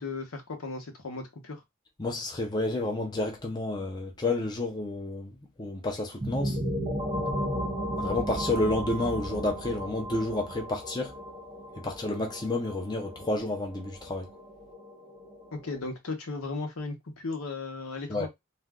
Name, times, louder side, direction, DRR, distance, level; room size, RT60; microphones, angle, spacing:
voice 1, 0.0-1.6 15.5-18.3, left 3 dB, 85° left, 0.8 m, -36 dB
voice 2, 2.0-6.6 8.0-11.2 11.8-14.3 18.1-18.3, left 2 dB, 20° left, 0.5 m, -30 dB
sound 1, 6.2-15.8, equal, 15° right, 0.7 m, -35 dB
2.5 x 2.2 x 3.4 m
head